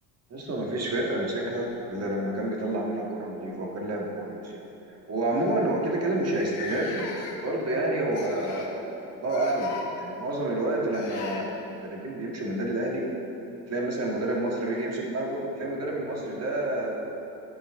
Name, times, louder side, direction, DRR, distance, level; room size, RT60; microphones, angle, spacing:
voice 1, 0.3-4.7 5.1-13.1 13.7-17.1, right 1 dB, 35° right, -2 dB, 1.8 m, -29 dB
sound 1, 1.9-2.7 3.8-4.0 4.4-4.5 5.3-5.4 5.5-5.6 6.2-7.6 8.1-8.8 9.2-9.9 10.9-11.4 13.6-13.7 14.7-14.8, left 4 dB, 75° left, 1.4 m, -39 dB
12.0 x 5.2 x 3.6 m, 3.0 s
cardioid pair, 105°, 42 cm